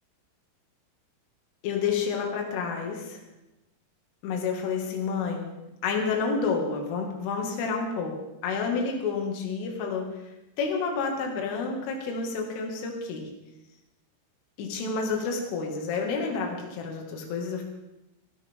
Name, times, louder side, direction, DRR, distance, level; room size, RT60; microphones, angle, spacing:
voice 1, 1.6-3.2 4.2-5.6 5.8-10.1 10.6-13.3 14.6-17.6, left 5 dB, 75° left, 1 dB, 4.7 m, -29 dB
23.0 x 13.5 x 3.7 m, 0.94 s
omnidirectional pair, 5.8 m